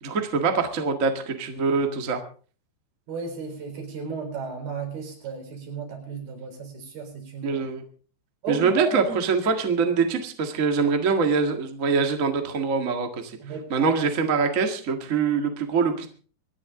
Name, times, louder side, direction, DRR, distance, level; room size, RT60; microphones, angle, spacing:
voice 1, 0.0-2.2 7.4-7.8 8.5-13.3 13.7-16.1, right 5 dB, 40° right, 5 dB, 1.2 m, -24 dB
voice 2, 3.1-7.6 8.4-9.2 13.4-13.9, right 5 dB, 80° right, 3 dB, 6.2 m, -34 dB
25.5 x 10.5 x 3.8 m, 0.41 s
omnidirectional pair, 4.3 m